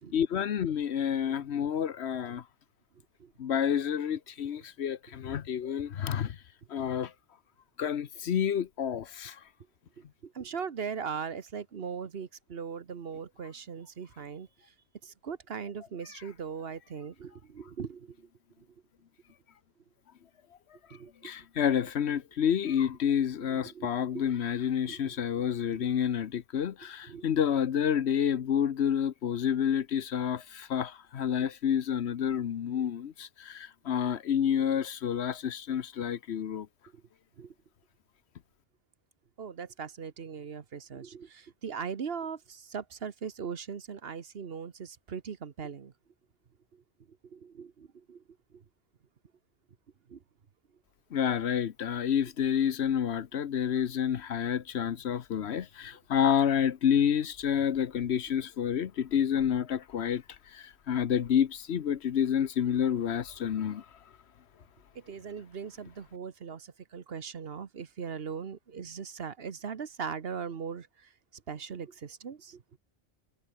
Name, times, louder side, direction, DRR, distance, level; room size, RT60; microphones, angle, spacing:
voice 1, 0.1-2.4 3.4-6.4 6.7-7.1 7.8-9.4 21.2-36.7 51.1-60.2 60.5-63.8, left 8 dB, 70° left, 1.1 m, -29 dB
voice 2, 10.0-14.5 15.0-18.2 20.9-21.3 23.5-23.9 24.1-24.3 24.9-25.4 25.7-25.9 27.0-27.2 37.4-37.5 39.4-45.9 47.3-48.2 48.5-48.6 50.1-50.2 64.9-70.9 71.5-72.6, right 6 dB, 60° right, 1.3 m, -39 dB
omnidirectional pair, 1.2 m